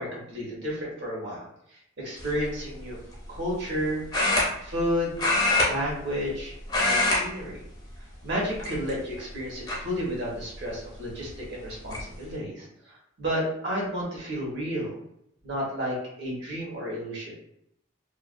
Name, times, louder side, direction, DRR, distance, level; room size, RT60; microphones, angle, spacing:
voice 1, 0.0-1.4 2.0-3.0 3.3-4.0 4.6-5.3 5.7-6.5 6.8-7.6 8.2-14.9 15.4-17.3, equal, 60° right, -4 dB, 1.0 m, -31 dB
sound 1, 2.2-2.5 4.1-4.9 5.2-6.4 6.6-7.2 7.5-7.8 8.5-9.1 9.7-9.8 11.2-11.3 11.6-12.0, left 2 dB, 20° left, 0.5 m, -24 dB
2.4 x 2.2 x 2.5 m, 0.76 s
head